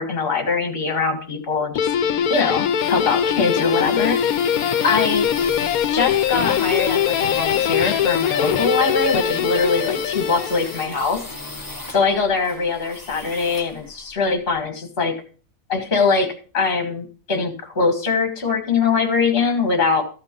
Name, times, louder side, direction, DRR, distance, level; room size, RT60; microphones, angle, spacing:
voice 1, 0.0-1.8 2.3-4.4 4.8-5.3 5.9-11.2 11.9-15.1 15.7-20.0, left 4 dB, 40° left, 6 dB, 1.8 m, -22 dB
Guitar, 1.8-11.1, left 9 dB, 85° left, 1.2 m, -22 dB
sound 1, 1.8-14.6, left 2 dB, 15° left, 1.5 m, -37 dB
14.0 x 5.9 x 5.1 m, 0.38 s
omnidirectional pair, 1.5 m